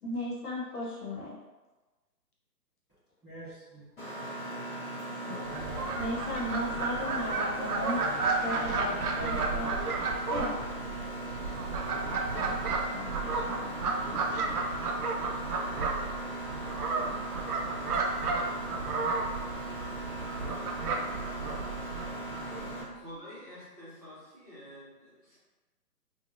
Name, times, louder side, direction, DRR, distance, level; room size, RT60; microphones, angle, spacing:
voice 1, 0.0-1.3 5.3-5.4 6.0-8.0 8.4-9.7 10.3-10.5 12.1-14.6, left 1 dB, 65° left, -4 dB, 1.0 m, -36 dB
voice 2, 3.2-3.8 5.3-6.0 7.6-10.2, right 1 dB, 5° right, -24 dB, 1.1 m, -44 dB
Mechanisms, 4.0-22.8, right 1 dB, 35° left, 1.3 m, -39 dB
Fowl, 5.5-22.8, right 3 dB, 65° right, 0.6 m, -33 dB
voice 3, 22.7-25.4, equal, 25° right, -14 dB, 0.9 m, -48 dB
3.1 x 2.3 x 2.5 m, 1.2 s
hypercardioid pair, 180°, 48 cm